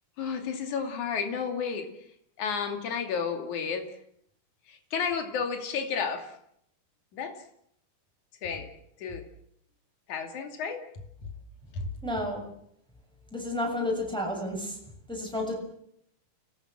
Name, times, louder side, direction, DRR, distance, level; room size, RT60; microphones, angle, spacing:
voice 1, 0.2-1.9 2.4-3.9 4.7-6.3 7.1-7.4 8.4-8.7 9.0-9.3 10.1-10.8 11.7-11.9, left 6 dB, 60° left, 5 dB, 3.9 m, -32 dB
voice 2, 12.0-12.4 13.3-14.8 15.1-15.5, left 1 dB, ahead, 0 dB, 6.4 m, -31 dB
30.0 x 18.5 x 7.5 m, 0.73 s
omnidirectional pair, 4.0 m